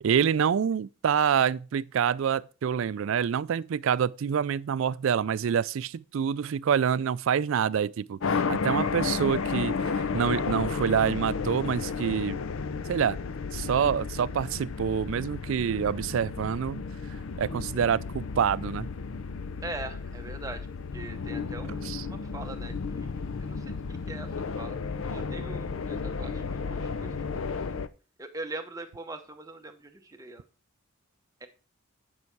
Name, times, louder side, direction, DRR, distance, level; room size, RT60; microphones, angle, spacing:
voice 1, 0.0-12.4 12.9-13.2 13.5-16.8 17.4-18.9 21.7-22.1, right 7 dB, 60° right, 0.3 m, -27 dB
sound 1, 8.2-27.9, left 5 dB, 65° left, 0.5 m, -33 dB
voice 2, 19.6-20.7 20.9-24.8 25.0-27.6 28.2-30.4 31.4-31.5, right 2 dB, 15° right, 0.9 m, -42 dB
9.6 x 5.6 x 4.6 m
head